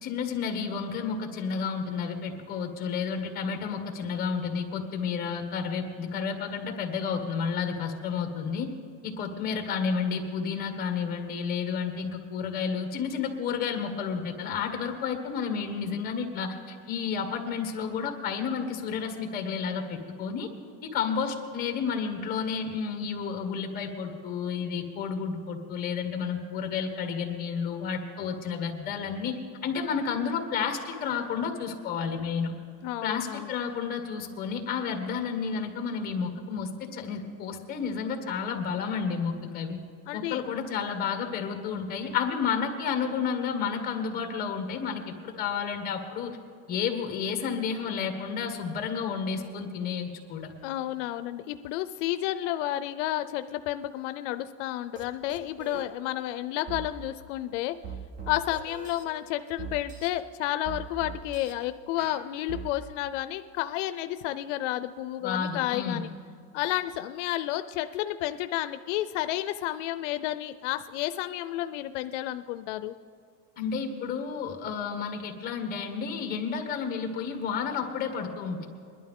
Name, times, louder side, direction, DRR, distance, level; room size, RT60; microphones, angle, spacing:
voice 1, 0.0-8.7 9.0-20.5 20.8-32.5 33.0-39.8 40.1-46.4 46.7-50.5 65.2-66.0 73.6-78.7, left 6 dB, 25° left, 5 dB, 1.4 m, -31 dB
voice 2, 32.8-33.5 40.1-40.4 50.6-57.7 58.3-66.1 66.5-72.9, left 14 dB, 80° left, 11 dB, 0.5 m, -31 dB
sound 1, 55.0-55.1 55.3-55.9 56.7-56.8 57.8-59.0 59.6-60.1 60.7-61.5 62.0-62.7, right 6 dB, 20° right, 0.9 m, -40 dB
21.0 x 11.5 x 3.7 m, 2.2 s
cardioid pair, 175°, 36 cm